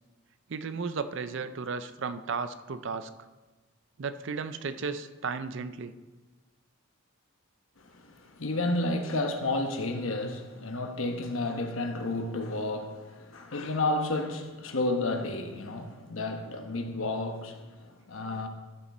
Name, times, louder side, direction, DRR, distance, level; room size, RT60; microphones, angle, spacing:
voice 1, 0.5-3.1 4.0-6.0 18.2-18.5, right 5 dB, 60° right, 0.5 m, -34 dB
voice 2, 7.8-18.5, left 2 dB, 70° left, 1.0 m, -31 dB
13.5 x 5.8 x 4.2 m
head